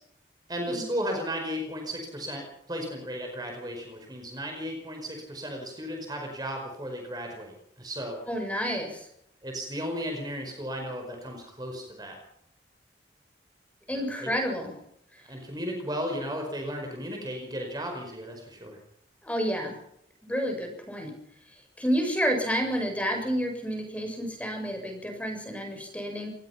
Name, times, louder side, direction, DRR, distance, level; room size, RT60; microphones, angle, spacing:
voice 1, 0.5-8.2 9.4-12.2 13.9-14.3 15.2-18.8, equal, 20° right, 2 dB, 5.0 m, -35 dB
voice 2, 8.3-9.1 13.9-14.7 19.2-19.8 20.2-21.1 21.8-26.3, equal, 10° left, 3 dB, 7.2 m, -30 dB
27.5 x 19.5 x 5.9 m, 0.73 s
head